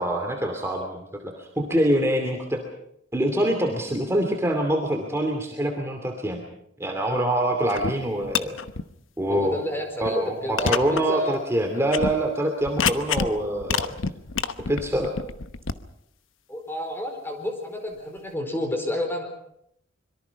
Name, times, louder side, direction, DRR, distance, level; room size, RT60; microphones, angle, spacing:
voice 1, 0.0-2.6 3.1-6.4 6.8-8.6 9.2-9.6 10.0-13.9 14.6-15.1, right 1 dB, 15° right, 2 dB, 2.6 m, -25 dB
sound 1, 7.7-7.9 8.2-8.8 9.3-9.4 10.1-10.2 10.6-11.0 11.3-11.4 11.9-12.1 12.6-13.3 13.6-15.7, left 5 dB, 70° left, 1.1 m, -27 dB
voice 2, 9.3-11.4 16.5-19.3, left 1 dB, 10° left, 4 dB, 4.5 m, -31 dB
25.0 x 23.0 x 5.9 m, 0.73 s
head